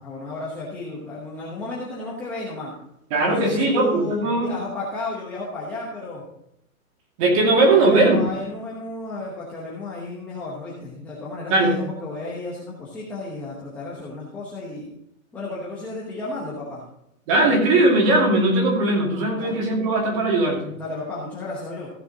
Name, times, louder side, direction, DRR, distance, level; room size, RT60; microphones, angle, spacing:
voice 1, 0.0-2.8 3.3-6.2 7.7-14.9 15.3-16.8 19.4-19.6 20.8-21.9, left 2 dB, 5° left, -7 dB, 0.9 m, -33 dB
voice 2, 3.1-4.5 7.2-8.2 11.5-11.7 17.3-20.7, right 2 dB, 25° right, 1 dB, 2.4 m, -19 dB
15.0 x 7.0 x 4.0 m, 0.79 s
hypercardioid pair, 175°, 41 cm